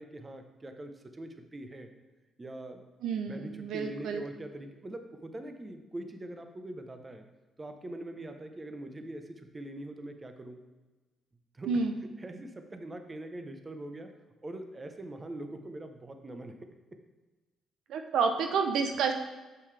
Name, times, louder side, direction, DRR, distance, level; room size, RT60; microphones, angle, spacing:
voice 1, 0.0-1.9 2.4-2.9 3.3-7.3 7.6-10.6 11.5-11.8 12.2-14.1 14.4-17.0, right 1 dB, 25° right, 6 dB, 0.8 m, -43 dB
voice 2, 3.0-4.2 11.7-11.9 17.9-19.1, right 5 dB, 80° right, 5 dB, 0.6 m, -29 dB
6.8 x 6.8 x 3.3 m, 1.2 s
cardioid pair, 90°, 0 cm